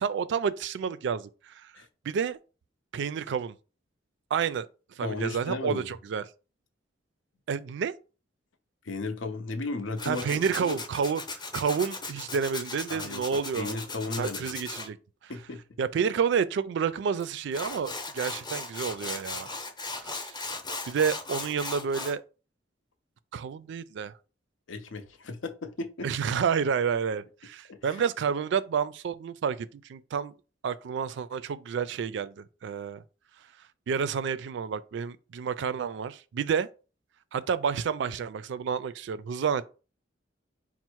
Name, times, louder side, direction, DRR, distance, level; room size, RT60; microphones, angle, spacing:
voice 1, 0.0-1.7 2.0-2.4 2.9-3.5 4.3-4.7 5.0-6.2 7.5-7.9 10.1-13.8 14.2-15.0 15.8-19.5 20.0-20.5 20.8-22.2 23.3-24.1 26.0-30.3 30.6-33.0 33.9-36.7 37.3-39.6, right 6 dB, 70° right, 0.3 m, -30 dB
voice 2, 5.0-5.9 8.8-10.2 10.6-10.8 12.9-14.5 15.3-15.6 24.7-26.1 27.7-28.0, left 3 dB, 85° left, 0.6 m, -35 dB
Tools, 10.0-14.9 17.2-17.3 17.5-22.2, left 3 dB, 25° left, 0.7 m, -37 dB
4.1 x 2.0 x 4.5 m
head